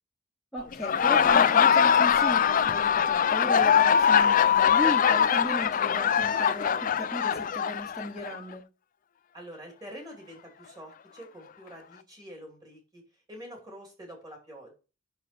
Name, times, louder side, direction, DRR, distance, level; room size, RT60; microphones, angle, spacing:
voice 1, 0.5-8.6, equal, ahead, 1.1 m, -35 dB
Laughter, 0.7-8.4, left 8 dB, 40° left, 0.4 m, -22 dB
voice 2, 9.3-13.0 13.3-14.8, equal, 20° right, 2.7 m, -46 dB
6.3 x 5.6 x 4.4 m
head